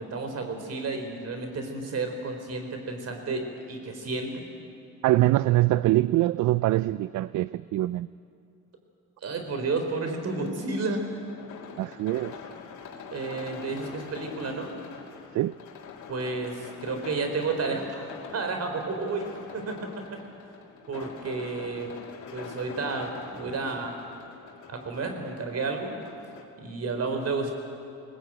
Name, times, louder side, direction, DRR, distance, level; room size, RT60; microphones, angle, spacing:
voice 1, 0.0-4.4 9.2-11.0 13.1-14.7 16.1-19.2 19.5-19.8 20.1-20.2 20.9-21.9 22.3-24.0 24.7-25.9 26.6-27.5, right 3 dB, 55° right, 4.3 m, -31 dB
voice 2, 5.0-8.1 11.8-12.4 15.3-15.5, right 16 dB, 75° right, 0.5 m, -23 dB
sound 1, 9.8-26.4, left 5 dB, 75° left, 2.8 m, -44 dB
20.5 x 19.5 x 9.0 m
cardioid pair, 90°, 30 cm